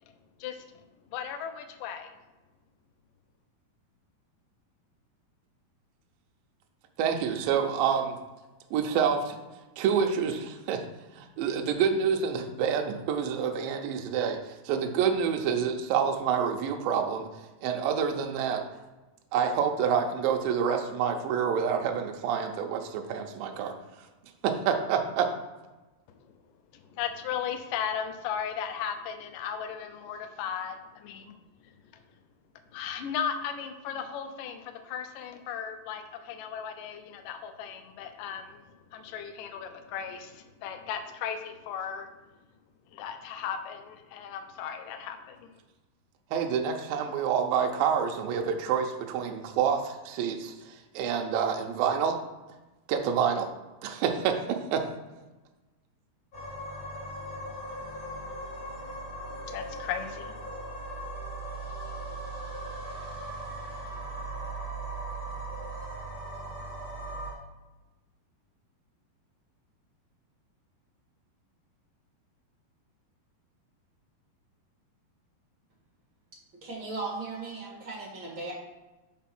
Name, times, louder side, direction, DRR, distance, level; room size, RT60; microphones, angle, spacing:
voice 1, 0.4-0.8 1.1-2.1 26.2-26.4 26.7-31.3 31.6-31.7 32.7-42.1 42.9-45.5 58.9-59.0 59.3-60.3, left 8 dB, 80° left, 7 dB, 2.0 m, -36 dB
voice 2, 7.0-8.2 8.7-9.4 9.8-10.8 11.2-17.3 17.6-18.6 19.3-23.7 24.4-25.3 46.3-52.2 52.9-53.5 53.8-54.9, right 7 dB, 75° right, 3 dB, 2.3 m, -27 dB
sound 1, 56.3-67.3, right 1 dB, 30° left, 1.7 m, -38 dB
voice 3, 76.6-78.5, right 3 dB, 45° right, -4 dB, 1.8 m, -37 dB
5.9 x 4.6 x 6.0 m, 1.1 s
omnidirectional pair, 4.5 m